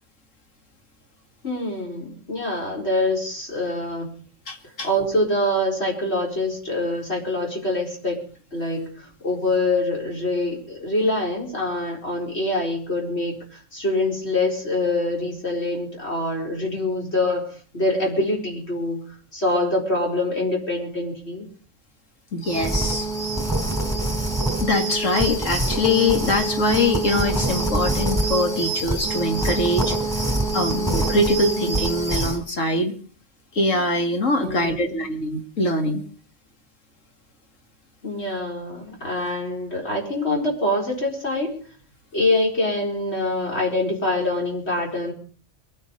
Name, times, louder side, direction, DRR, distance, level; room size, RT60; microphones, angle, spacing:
voice 1, 1.4-4.1 4.8-8.2 8.5-21.4 34.4-35.0 38.0-41.6 42.1-45.1, left 1 dB, 60° left, -1 dB, 4.7 m, -25 dB
voice 2, 4.5-4.9 22.3-23.1 24.6-30.0 30.5-32.9 33.5-36.0, left 2 dB, 85° left, 4 dB, 2.6 m, -23 dB
sound 1, 22.4-32.4, right 2 dB, ahead, 4.3 m, -25 dB
22.5 x 9.7 x 5.3 m, 0.42 s
omnidirectional pair, 1.3 m